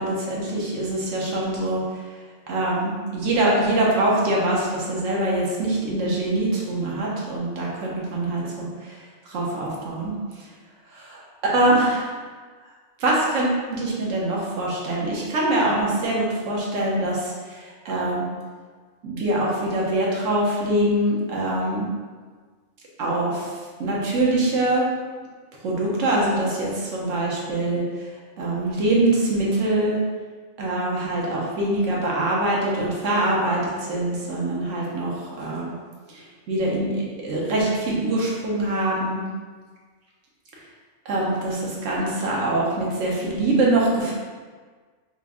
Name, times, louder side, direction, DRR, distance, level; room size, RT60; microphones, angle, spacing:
voice 1, 0.0-1.8 2.5-9.0 9.3-10.1 11.4-12.1 13.0-18.2 19.0-21.9 23.0-23.5 23.8-24.9 25.6-28.1 28.4-30.0 30.6-35.7 36.1-39.2 41.1-44.1, right 1 dB, 80° right, -4 dB, 1.1 m, -24 dB
3.4 x 2.5 x 3.5 m, 1.5 s
omnidirectional pair, 1.3 m